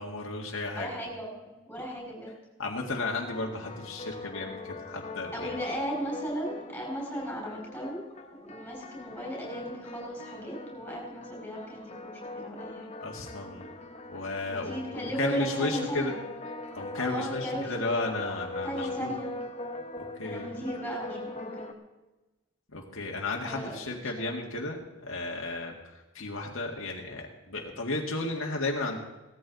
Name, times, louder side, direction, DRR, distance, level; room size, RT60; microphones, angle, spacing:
voice 1, 0.0-0.9 2.6-5.5 13.0-13.7 14.1-16.1 16.7-19.1 20.1-20.5 22.7-29.0, left 2 dB, 70° left, -1 dB, 1.9 m, -34 dB
voice 2, 0.8-2.4 5.3-8.0 8.4-12.9 14.5-16.2 16.9-17.7 18.0-18.1 18.6-19.3 20.2-21.7 23.3-24.3, equal, 5° left, -2 dB, 5.9 m, -36 dB
sound 1, 2.9-21.7, left 2 dB, 30° left, 1.2 m, -41 dB
17.5 x 14.0 x 4.0 m, 1.1 s
head